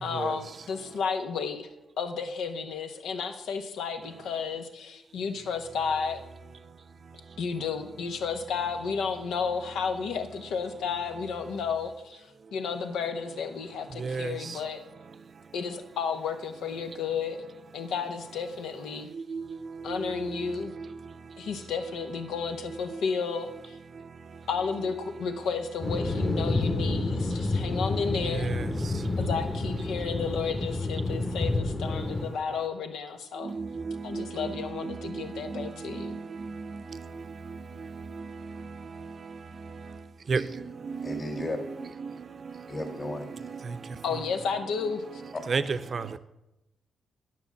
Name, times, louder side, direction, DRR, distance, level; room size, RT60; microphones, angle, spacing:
voice 1, 0.0-1.7 2.0-6.2 7.4-14.8 15.5-17.4 17.7-19.1 19.8-20.7 21.4-23.8 24.5-28.5 29.2-33.6 34.0-36.2 44.0-45.2, left 6 dB, 90° left, 1.0 m, -32 dB
voice 2, 14.0-14.3 19.3-19.4 28.4-28.6 33.4-34.5 34.8-35.0 35.5-35.7 36.0-36.2 40.3-40.4 40.9-41.5 42.8-42.9 45.5-46.1, right 5 dB, 50° right, 0.6 m, -31 dB
sound 1, 25.8-32.3, left 2 dB, 25° left, 1.1 m, -29 dB
voice 3, 41.0-41.6 42.7-43.6 45.3-45.4, left 2 dB, 40° left, 2.4 m, -35 dB
9.6 x 6.1 x 7.1 m
cardioid pair, 75°, 0 cm